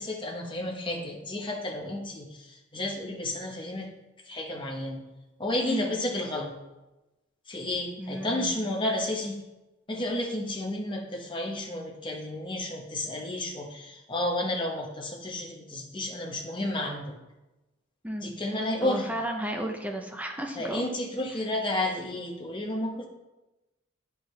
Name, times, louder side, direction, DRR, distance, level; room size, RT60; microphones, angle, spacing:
voice 1, 0.0-3.9 4.3-5.0 5.4-6.5 7.5-9.4 9.9-17.1 18.2-19.1 20.6-23.1, left 1 dB, 25° left, 0 dB, 1.0 m, -31 dB
voice 2, 5.6-6.0 8.0-8.6 18.0-18.4 18.8-20.8, right 1 dB, 10° right, 3 dB, 0.6 m, -34 dB
8.6 x 4.7 x 3.2 m, 1.0 s
head